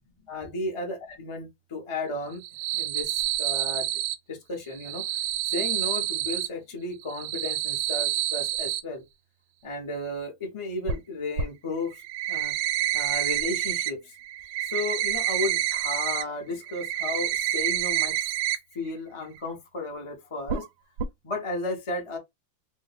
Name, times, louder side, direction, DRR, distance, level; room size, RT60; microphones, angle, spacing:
voice 1, 0.3-1.0 1.2-2.4 2.7-3.9 4.3-5.2 5.5-9.0 9.6-12.0 12.3-12.5 12.9-14.2 14.6-18.3 18.7-20.7 21.2-22.2, left 2 dB, 45° left, 0.3 m, -34 dB
sound 1, 2.3-4.2 4.7-6.5 7.0-8.8 10.9-11.0 11.4-11.5 11.9-13.9 14.2-16.2 16.6-18.6 18.9-19.0 19.4-19.5 20.5-20.7 21.0-21.1, right 11 dB, 75° right, 1.2 m, -28 dB
3.3 x 2.3 x 3.3 m
omnidirectional pair, 2.3 m